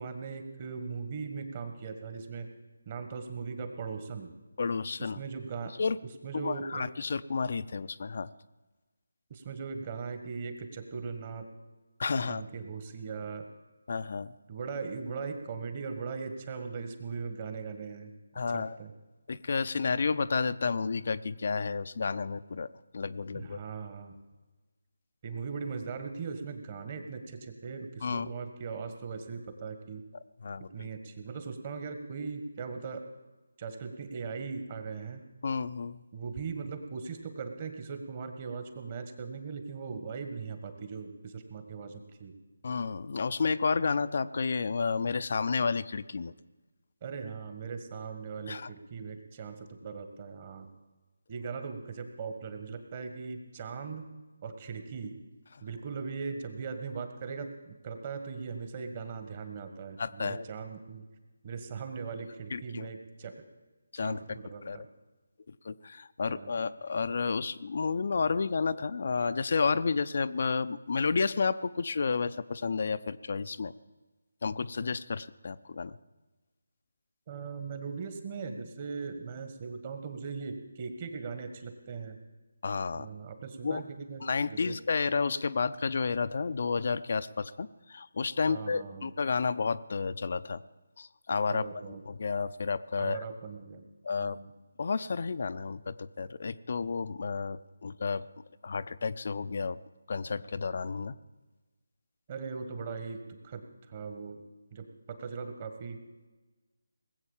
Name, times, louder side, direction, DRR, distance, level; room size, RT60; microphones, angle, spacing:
voice 1, 0.0-2.5 2.8-4.3 5.0-5.7 6.2-6.9 9.3-11.5 12.1-13.5 14.5-18.1 18.5-18.9 23.3-24.2 25.2-30.0 30.7-33.0 33.6-35.2 36.1-42.3 47.0-50.7 51.3-54.1 54.4-55.2 55.6-61.1 61.4-63.3 64.0-64.9 66.3-66.5 77.3-82.2 82.9-84.2 84.5-84.8 88.5-89.1 91.5-92.0 93.0-93.8 94.2-94.5 102.3-104.4 104.7-106.0, right 5 dB, 35° right, 7 dB, 1.7 m, -39 dB
voice 2, 4.6-5.2 5.8-6.0 6.3-8.3 12.0-12.4 13.9-14.3 18.4-18.8 19.3-22.7 22.9-23.6 28.0-28.3 30.4-30.9 35.4-36.0 42.6-46.3 48.5-48.7 60.0-60.4 62.5-62.9 63.9-64.4 64.6-64.8 65.6-73.7 74.4-76.0 82.6-83.1 83.6-83.8 84.2-90.6 91.0-91.7 92.1-93.2 94.0-94.4 94.8-98.3 98.6-99.8 100.1-101.2, left 4 dB, 50° left, 13 dB, 0.5 m, -31 dB
19.5 x 8.0 x 7.3 m, 1.2 s
figure-of-eight pair, 160°, 0 cm